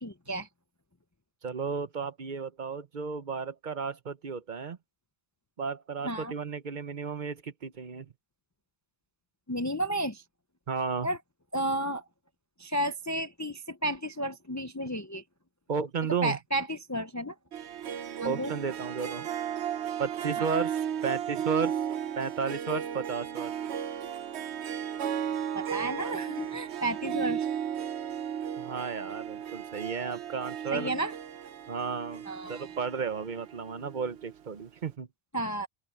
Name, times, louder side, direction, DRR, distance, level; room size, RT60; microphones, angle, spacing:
voice 1, 0.0-0.5 6.0-6.3 9.5-10.2 11.0-11.2 11.5-12.0 12.6-15.2 16.2-17.3 18.2-18.5 20.4-20.5 25.5-27.5 30.7-31.1 32.3-32.6 35.3-35.7, right 1 dB, 20° left, 0.6 m, -32 dB
voice 2, 1.4-4.8 5.6-8.1 10.7-11.1 15.7-16.4 18.2-19.3 20.0-21.8 22.2-23.5 28.6-30.9 31.7-32.2 32.5-35.1, right 5 dB, 45° right, 1.0 m, -33 dB
Harp, 17.5-34.3, right 9 dB, 75° right, 1.1 m, -35 dB
open air
omnidirectional pair, 1.1 m